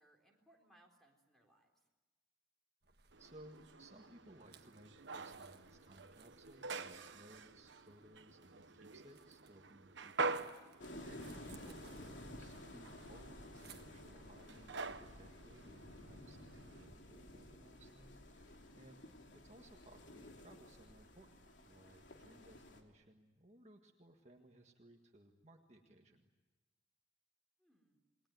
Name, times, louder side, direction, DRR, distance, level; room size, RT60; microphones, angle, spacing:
voice 1, 0.0-1.9 27.6-28.0, right 1 dB, ahead, 1 dB, 4.0 m, -71 dB
sound 1, 2.8-14.2, right 7 dB, 60° right, 1.5 m, -66 dB
sound 2, 3.1-16.9, right 3 dB, 85° right, 1.2 m, -47 dB
voice 2, 3.2-10.4 10.6-19.0 19.4-21.4 21.7-26.3, right 1 dB, 35° right, 2 dB, 1.7 m, -62 dB
sound 3, 10.8-22.8, left 1 dB, 85° left, 3.0 m, -54 dB
28.0 x 21.5 x 9.2 m, 1.2 s
head